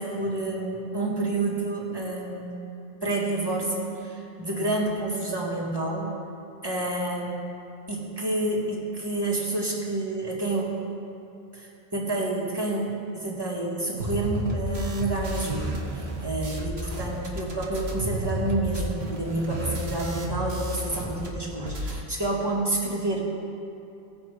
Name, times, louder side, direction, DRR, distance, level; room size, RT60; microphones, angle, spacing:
voice 1, 0.0-2.6 3.0-6.2 6.6-7.4 7.9-10.8 11.5-23.3, right 2 dB, 25° right, -3 dB, 1.8 m, -29 dB
sound 1, 14.0-21.3 21.5-22.0, right 1 dB, 75° right, 1.4 m, -32 dB
18.0 x 6.1 x 4.9 m, 2.7 s
omnidirectional pair, 1.1 m